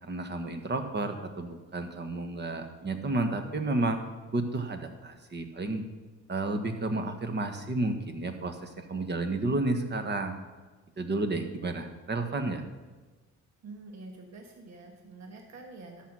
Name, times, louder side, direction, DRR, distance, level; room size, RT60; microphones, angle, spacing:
voice 1, 0.0-4.0 4.3-5.9 6.3-10.3 11.0-12.6, right 2 dB, 35° right, 7 dB, 1.3 m, -31 dB
voice 2, 13.6-16.1, right 3 dB, 60° right, 2 dB, 1.5 m, -47 dB
13.0 x 5.8 x 6.1 m, 1.3 s
cardioid pair, 90°, 30 cm